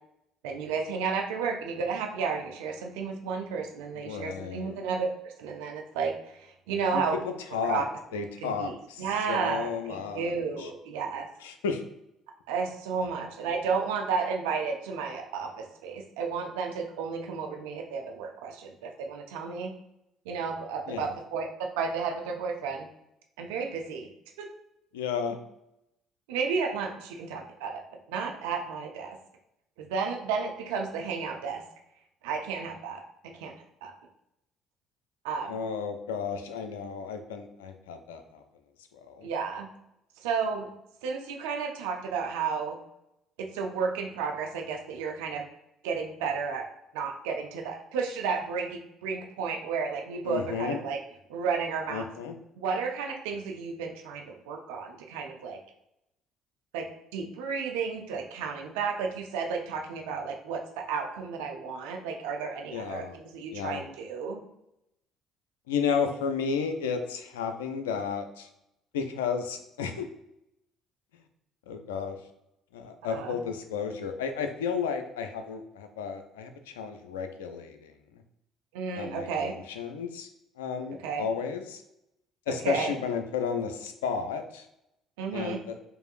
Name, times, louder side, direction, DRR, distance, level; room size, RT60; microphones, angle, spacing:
voice 1, 0.4-7.2 7.6-7.9 8.4-11.3 12.5-19.7 20.3-22.9 23.4-24.1 24.4-24.5 26.3-27.8 28.1-29.2 29.8-31.6 32.2-33.5 33.8-33.9 35.2-35.6 39.2-39.7 40.2-40.7 41.0-42.8 43.4-45.5 45.8-46.7 46.9-51.0 51.3-52.1 52.6-55.6 56.7-64.4 73.1-73.4 78.7-79.6 81.0-81.3 82.5-82.9 85.2-85.6, right 5 dB, 80° right, 2 dB, 0.5 m, -32 dB
voice 2, 4.0-4.8 6.9-7.8 8.1-10.7 11.4-11.8 13.0-13.1 20.9-21.1 24.9-25.4 35.5-38.4 39.1-39.3 50.2-50.8 51.9-52.3 62.7-63.2 63.5-63.8 65.7-68.5 68.9-70.1 71.7-72.2 72.7-77.9 78.9-80.3 80.6-81.8 82.5-84.7 85.3-85.7, left 6 dB, 85° left, 7 dB, 0.4 m, -33 dB
4.8 x 2.6 x 2.5 m, 0.83 s
hypercardioid pair, 60°, 0 cm